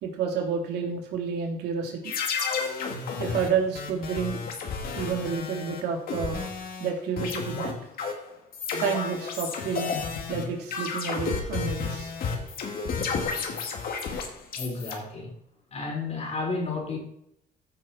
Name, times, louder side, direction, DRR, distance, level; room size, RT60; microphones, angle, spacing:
voice 1, 0.0-2.1 3.2-4.4 5.0-6.4 6.8-7.7 8.8-9.9 10.3-12.1, right 6 dB, 75° right, 0 dB, 3.0 m, -30 dB
sound 1, 2.0-6.9 7.2-14.9, left 5 dB, 60° left, 2.4 m, -32 dB
voice 2, 14.5-15.3 15.7-17.0, left 3 dB, 40° left, 1 dB, 4.1 m, -32 dB
15.0 x 6.4 x 4.3 m, 0.73 s
cardioid pair, 110°, 17 cm